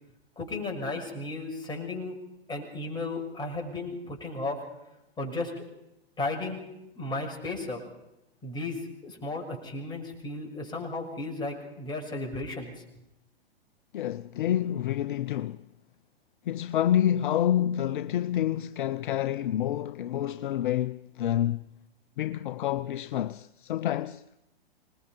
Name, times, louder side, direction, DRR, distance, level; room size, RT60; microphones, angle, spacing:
voice 1, 0.4-2.2 2.5-4.6 5.2-5.5 6.2-6.6 6.9-7.8 8.4-12.7, left 2 dB, 15° left, 6.4 m, -34 dB
voice 2, 13.9-15.6 16.5-21.7 22.2-24.2, left 11 dB, 55° left, 0.7 m, -28 dB
26.0 x 20.5 x 5.4 m
figure-of-eight pair, 115°, 31 cm